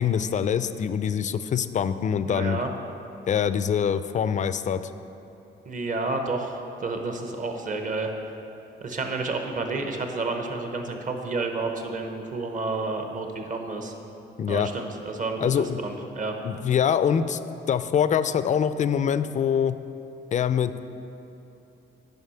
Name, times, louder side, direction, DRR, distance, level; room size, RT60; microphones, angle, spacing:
voice 1, 0.0-2.6 3.3-4.8 14.4-14.7 15.4-15.8 16.4-17.4 17.7-19.8 20.3-20.8, left 8 dB, 40° left, 13 dB, 0.4 m, -24 dB
voice 2, 2.3-2.7 5.6-8.1 8.8-13.9 14.5-16.4, right 3 dB, 40° right, 4 dB, 1.0 m, -30 dB
9.4 x 5.6 x 5.6 m, 2.9 s
cardioid pair, 90°, 20 cm